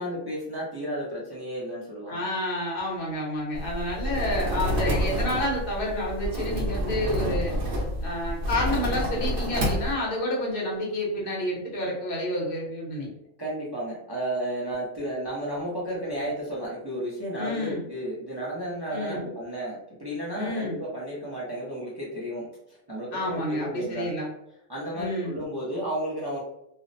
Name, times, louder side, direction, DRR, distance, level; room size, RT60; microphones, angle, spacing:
voice 1, 0.0-2.2 13.4-24.1 24.7-26.4, right 1 dB, 35° right, -6 dB, 0.4 m, -33 dB
voice 2, 2.1-7.5 8.0-13.1 17.4-17.9 18.9-19.3 20.3-20.8 23.1-24.3 24.9-25.4, left 1 dB, 55° left, -3 dB, 0.9 m, -29 dB
sound 1, 3.5-9.9, equal, 50° right, 0.8 m, -28 dB
2.5 x 2.0 x 2.5 m, 0.79 s
omnidirectional pair, 1.3 m